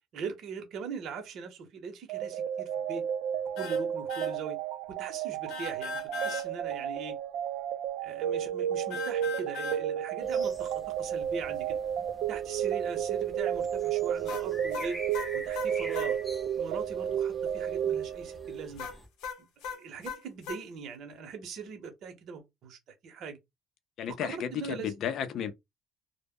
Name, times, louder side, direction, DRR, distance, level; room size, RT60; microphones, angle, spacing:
voice 1, 0.1-3.0 3.5-4.6 4.9-7.2 8.0-11.8 12.3-15.0 15.3-16.2 16.6-18.9 19.4-23.4 24.1-25.0, right 5 dB, 55° right, 0.7 m, -41 dB
sound 1, 2.1-18.7, right 9 dB, 75° right, 0.3 m, -32 dB
sound 2, 3.6-3.8 4.1-4.3 5.5-6.5 8.9-9.8 14.3-16.1 18.8-20.6, left 5 dB, 85° left, 0.7 m, -38 dB
sound 3, 10.2-19.1, equal, ahead, 0.6 m, -47 dB
voice 2, 24.0-25.5, left 9 dB, 55° left, 0.4 m, -33 dB
2.0 x 2.0 x 3.5 m
cardioid pair, 140°, 0 cm